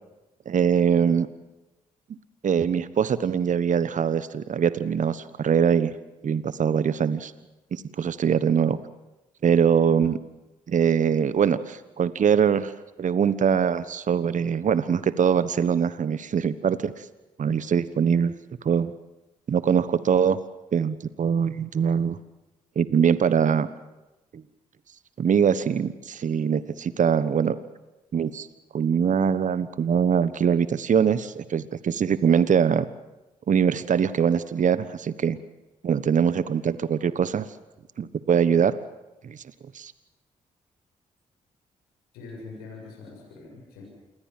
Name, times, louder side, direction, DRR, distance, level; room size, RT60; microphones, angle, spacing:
voice 1, 0.5-1.3 2.4-5.9 6.2-7.3 7.7-8.8 9.4-10.2 10.7-12.7 13.0-17.0 17.4-18.3 18.6-18.9 19.5-20.4 20.7-22.2 22.7-23.7 24.3-24.4 25.2-27.6 28.1-28.5 28.7-32.8 33.5-35.4 35.8-37.5 38.0-38.7 39.2-39.4 39.7-39.9, right 7 dB, 55° right, 15 dB, 1.3 m, -22 dB
voice 2, 42.1-43.8, left 3 dB, 85° left, -1 dB, 7.4 m, -43 dB
28.0 x 21.0 x 7.6 m, 1.0 s
hypercardioid pair, 45°, 16 cm